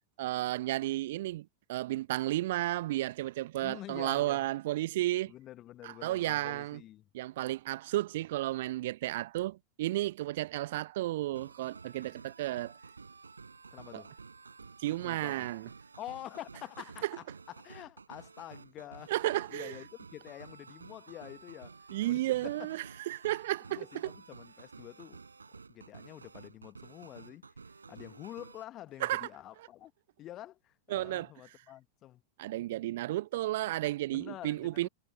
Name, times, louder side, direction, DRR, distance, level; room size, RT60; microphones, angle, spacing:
voice 1, 0.2-5.3 5.8-6.8 7.1-12.7 13.9-14.0 14.8-15.7 19.1-19.7 21.9-23.8 29.0-29.3 30.9-31.3 32.4-34.9, right 16 dB, 55° right, 0.8 m, -33 dB
voice 2, 3.6-4.5 5.2-7.1 13.7-14.1 15.0-15.5 16.0-22.5 23.7-29.9 30.2-32.2 34.1-34.9, left 13 dB, 35° left, 1.5 m, -48 dB
sound 1, 11.3-28.6, right 4 dB, 75° right, 7.2 m, -52 dB
figure-of-eight pair, 90°, 0 cm